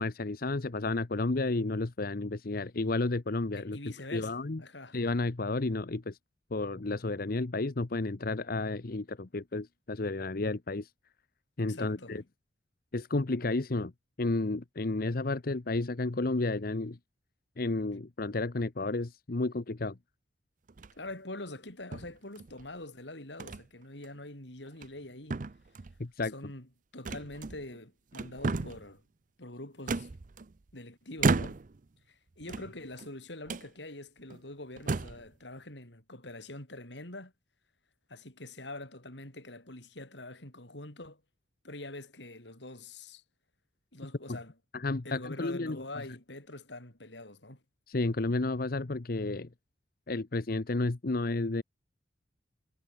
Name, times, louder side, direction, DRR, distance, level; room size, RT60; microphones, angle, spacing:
voice 1, 0.0-4.6 4.9-6.2 6.5-10.9 11.6-12.2 12.9-13.9 14.2-17.0 17.6-20.0 26.0-26.3 44.3-44.4 44.7-45.8 47.9-49.5 50.1-51.6, left 2 dB, 55° left, 0.9 m, -32 dB
voice 2, 3.5-5.0 11.6-12.1 20.9-25.4 26.2-29.0 29.4-30.1 30.7-31.6 32.1-37.3 38.1-41.2 41.6-43.2 43.9-44.5 45.0-47.6, left 2 dB, 75° left, 5.6 m, -45 dB
sound 1, 20.7-21.1 21.9-22.7 23.4-23.6 24.0-24.2 24.7-25.0 25.3-26.0 27.0-27.8 28.1-28.9 29.9-30.7 31.2-31.8 32.4-33.1 33.5-33.7 34.3-34.4 34.8-35.3, right 3 dB, 45° right, 0.6 m, -33 dB
head